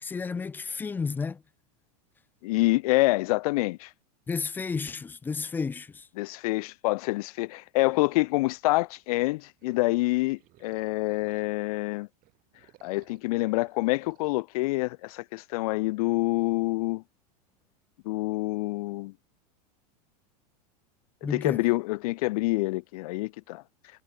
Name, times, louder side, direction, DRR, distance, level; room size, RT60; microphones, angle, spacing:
voice 1, 0.0-1.4 4.3-6.1 21.2-21.6, left 5 dB, 10° left, 0.3 m, -32 dB
voice 2, 2.4-3.9 6.2-12.1 12.8-17.0 18.0-19.1 21.2-23.6, left 22 dB, 65° left, 0.7 m, -27 dB
sound 1, 7.9-11.8 12.1-14.3, right 18 dB, 45° right, 3.9 m, -62 dB
supercardioid pair, 130°, 20 cm